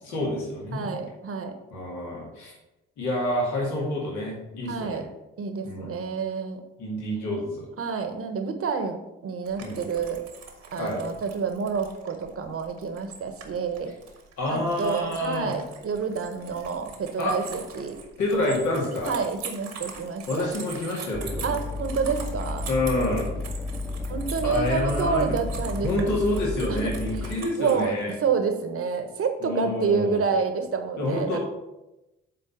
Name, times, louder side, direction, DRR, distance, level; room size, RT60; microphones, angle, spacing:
voice 1, 0.0-0.9 1.7-2.5 3.0-5.0 5.6-6.0 6.8-7.7 9.6-9.8 10.8-11.0 14.4-15.5 17.2-17.3 18.2-19.1 20.3-21.5 22.7-23.3 24.4-25.4 25.7-28.1 29.4-30.3 31.0-31.4, left 1 dB, 70° left, -3 dB, 2.2 m, -28 dB
voice 2, 0.7-1.5 4.7-5.1 5.4-6.6 7.8-9.0 9.2-10.2 10.7-13.9 14.5-18.0 18.4-18.6 19.0-20.5 21.4-22.6 24.1-26.1 26.7-26.8 27.1-27.3 27.6-31.4, right 5 dB, 50° right, 6 dB, 1.3 m, -28 dB
sound 1, 9.4-28.2, right 6 dB, 65° right, 1.5 m, -43 dB
sound 2, 21.1-27.4, left 2 dB, 5° left, 1.0 m, -32 dB
8.8 x 4.3 x 5.4 m, 0.97 s
hypercardioid pair, 45°, 30 cm